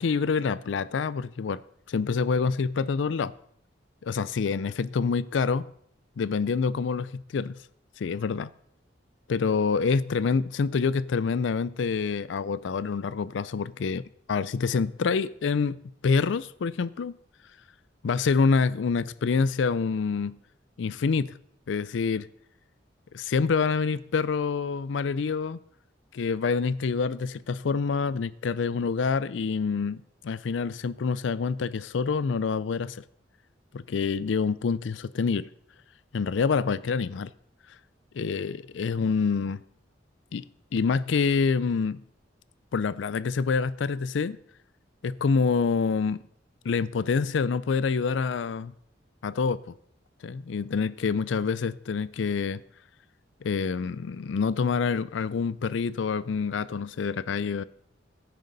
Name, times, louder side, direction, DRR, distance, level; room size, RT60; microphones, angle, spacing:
voice 1, 0.0-1.6 1.9-3.3 4.0-5.6 6.2-7.6 8.0-8.5 9.3-14.0 14.3-15.8 16.0-17.1 18.0-20.4 20.8-21.3 21.7-22.3 23.1-25.6 26.1-33.0 33.7-35.5 36.1-37.3 38.1-39.6 40.3-40.4 40.7-42.0 42.7-44.4 45.0-46.2 46.6-48.7 49.2-49.6 50.2-52.6 53.4-57.6, left 5 dB, 80° left, 0.4 m, -26 dB
15.5 x 9.3 x 4.0 m
head